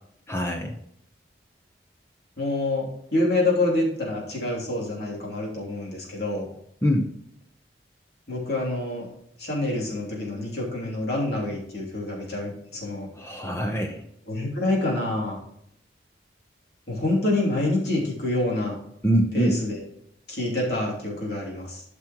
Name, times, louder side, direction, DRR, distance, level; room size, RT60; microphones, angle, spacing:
voice 1, 0.3-0.7 6.8-7.1 13.2-14.1 19.0-19.6, equal, 15° left, 3 dB, 0.8 m, -24 dB
voice 2, 2.4-6.5 8.3-9.1 9.4-13.1 14.3-15.4 16.9-18.8 19.3-19.8 20.3-21.8, left 2 dB, 60° left, -3 dB, 3.0 m, -27 dB
12.5 x 6.0 x 3.0 m, 0.74 s
head